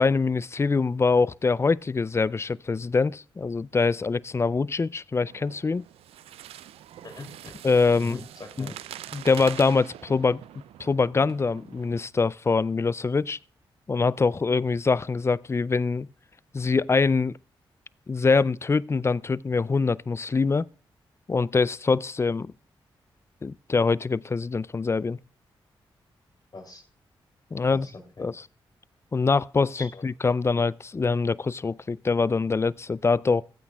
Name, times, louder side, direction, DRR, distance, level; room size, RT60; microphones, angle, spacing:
voice 1, 0.0-5.8 7.6-8.2 8.6-8.7 9.1-10.4 10.8-13.4 13.9-16.1 16.5-17.3 18.1-20.7 21.3-22.5 23.4-25.2 27.5-27.9 28.2-28.3 29.1-33.4, left 4 dB, 25° left, 0.3 m, -24 dB
sound 1, 5.3-12.0, right 12 dB, 90° right, 0.4 m, -44 dB
voice 2, 8.0-8.8 26.5-26.8 27.7-28.3 29.7-30.0, left 3 dB, 45° left, 2.8 m, -42 dB
15.5 x 8.5 x 2.3 m
supercardioid pair, 50°, 10 cm